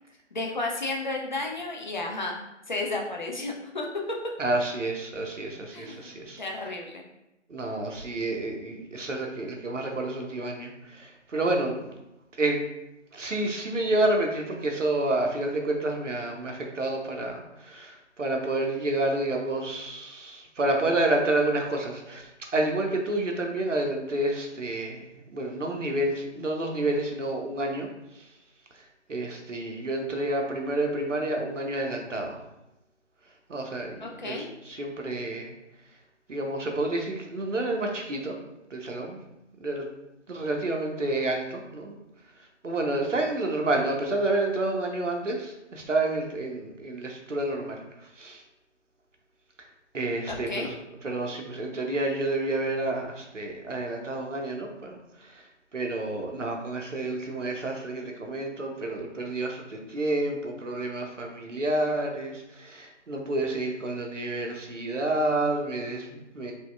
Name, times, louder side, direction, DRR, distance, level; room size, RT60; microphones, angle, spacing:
voice 1, 0.3-3.9 5.7-7.1 34.0-34.5 50.3-50.7, left 2 dB, 40° left, 0 dB, 0.5 m, -33 dB
voice 2, 4.4-6.4 7.5-12.0 12.4-12.6 13.1-27.9 28.1-28.3 29.1-32.4 33.5-35.5 36.3-38.4 38.7-39.2 39.6-39.9 40.3-42.0 42.6-47.8 48.2-48.4 49.9-50.8 51.0-55.5 55.7-66.5, right 2 dB, 80° right, 2 dB, 0.8 m, -29 dB
4.1 x 2.3 x 2.3 m, 0.91 s
figure-of-eight pair, 150°, 37 cm